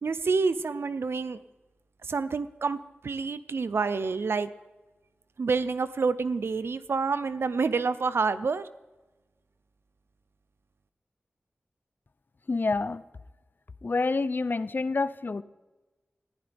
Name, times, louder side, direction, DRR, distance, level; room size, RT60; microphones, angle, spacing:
voice 1, 0.0-1.4 2.1-2.8 3.0-4.5 5.4-8.6, right 4 dB, 85° right, 14 dB, 0.6 m, -28 dB
voice 2, 12.5-13.0 13.8-15.4, left 3 dB, 55° left, 15 dB, 0.6 m, -27 dB
20.0 x 14.5 x 3.5 m, 1.1 s
wide cardioid pair, 65°, 4 cm